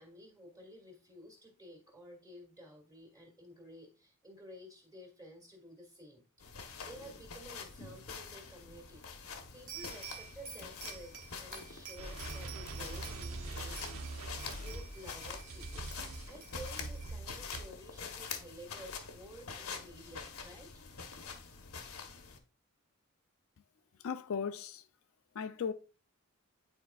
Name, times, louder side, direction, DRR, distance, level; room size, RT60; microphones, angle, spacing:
voice 1, 0.0-6.6 6.9-9.1 9.5-14.0 14.4-16.0 16.3-20.7, equal, 15° right, 2.0 m, -53 dB
sound 1, 6.4-22.4, left 5 dB, 85° left, 1.0 m, -46 dB
sound 2, 9.7-13.5 13.8-17.1, right 8 dB, 40° right, 1.1 m, -50 dB
sound 3, 12.0-17.6, right 2 dB, 75° right, 0.9 m, -43 dB
voice 2, 24.0-24.8 25.3-25.7, left 6 dB, 65° left, 0.4 m, -36 dB
9.2 x 4.5 x 2.3 m
head